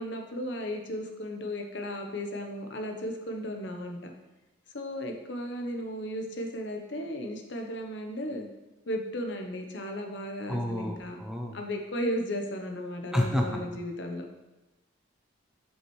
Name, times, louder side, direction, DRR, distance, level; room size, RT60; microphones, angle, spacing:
voice 1, 0.0-4.1 4.7-8.5 8.9-11.2 11.5-14.3, equal, 60° left, 4 dB, 0.8 m, -35 dB
voice 2, 10.5-11.6 13.1-13.5, left 1 dB, 5° right, 1 dB, 0.5 m, -29 dB
7.8 x 5.5 x 3.1 m, 1.1 s
head